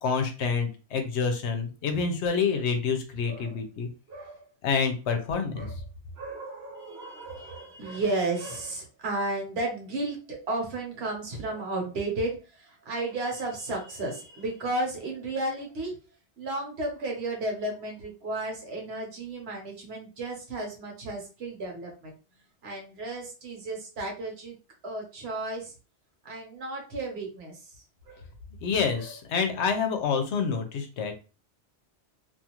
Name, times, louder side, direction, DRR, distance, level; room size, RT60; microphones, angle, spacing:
voice 1, 0.0-3.9 4.6-5.7 28.6-31.1, left 5 dB, 75° left, 6 dB, 0.9 m, -27 dB
voice 2, 3.2-3.6 4.1-4.5 5.5-5.7 6.2-16.0 16.4-22.1 22.6-24.5 24.8-25.7 26.2-27.8 28.1-28.2 28.9-29.2, right 2 dB, 65° right, 0 dB, 1.1 m, -33 dB
2.5 x 2.4 x 2.9 m, 0.34 s
omnidirectional pair, 1.2 m